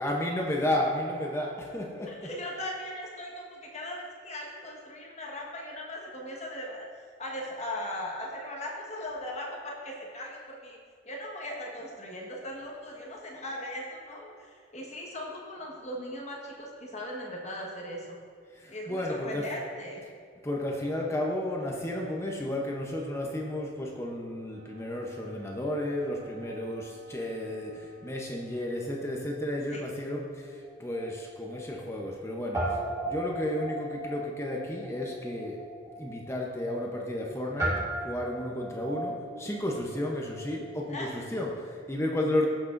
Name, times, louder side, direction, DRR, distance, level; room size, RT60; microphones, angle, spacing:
voice 1, 0.0-2.3 18.5-19.5 20.4-35.6 36.0-42.5, left 1 dB, 15° left, -1 dB, 0.7 m, -32 dB
voice 2, 2.0-6.9 7.2-10.8 11.0-18.2 18.7-20.0 29.7-29.8 40.9-41.1, left 1 dB, 35° left, -2 dB, 1.4 m, -38 dB
Wind instrument woodwind instrument, 24.5-28.8, right 3 dB, 75° right, 0.9 m, -55 dB
Guitar, 30.4-32.2 32.5-41.2, right 1 dB, 15° right, 1.9 m, -37 dB
15.0 x 6.1 x 2.6 m, 2.1 s
head